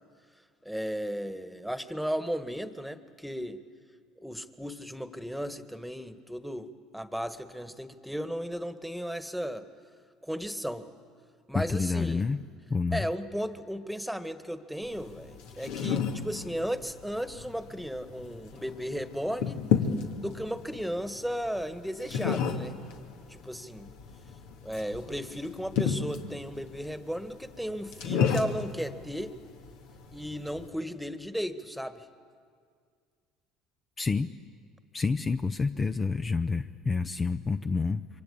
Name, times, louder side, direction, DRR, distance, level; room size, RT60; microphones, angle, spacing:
voice 1, 0.6-3.6 4.2-9.6 10.2-10.9 11.5-12.3 12.9-19.6 20.2-22.8 23.3-23.9 24.6-29.3 30.1-32.1, equal, ahead, 11 dB, 1.7 m, -35 dB
voice 2, 11.5-12.4 12.7-13.1 34.0-34.3 34.9-38.1, left 4 dB, 30° left, 9 dB, 0.8 m, -28 dB
sound 1, 14.8-30.7, left 7 dB, 70° left, 2.2 m, -33 dB
27.5 x 24.5 x 8.7 m, 2.1 s
hypercardioid pair, 65°, 0 cm